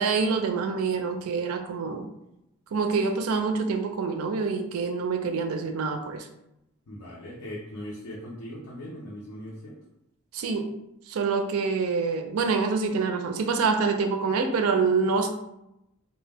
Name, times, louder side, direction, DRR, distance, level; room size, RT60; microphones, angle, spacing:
voice 1, 0.0-2.1 2.7-6.3 10.3-10.7 11.1-15.3, right 4 dB, 70° right, 5 dB, 0.4 m, -26 dB
voice 2, 6.9-9.7, equal, 80° left, -4 dB, 0.5 m, -39 dB
2.1 x 2.0 x 3.3 m, 0.86 s
head